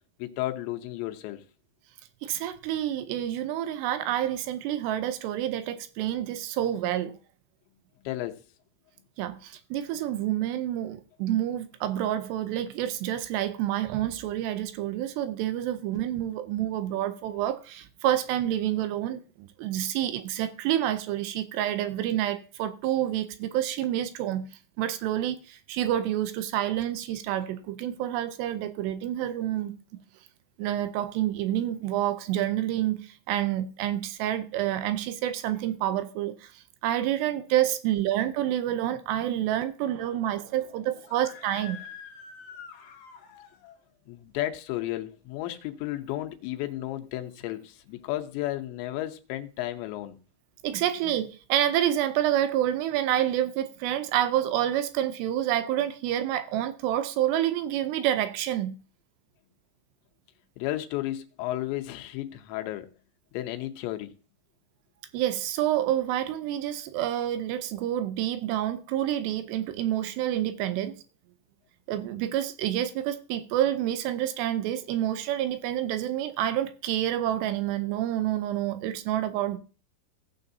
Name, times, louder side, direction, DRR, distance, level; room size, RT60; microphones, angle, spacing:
voice 1, 0.2-1.4 8.0-8.4 44.1-50.2 60.6-62.9 63.3-64.1, left 15 dB, 90° left, 3.1 m, -33 dB
voice 2, 2.2-7.2 9.2-24.5 24.8-29.7 30.6-41.8 50.6-58.7 65.1-70.9 71.9-79.6, right 12 dB, 80° right, 2.7 m, -28 dB
Screaming, 41.0-43.8, left 7 dB, 65° left, 2.3 m, -46 dB
17.0 x 6.8 x 2.7 m
omnidirectional pair, 5.0 m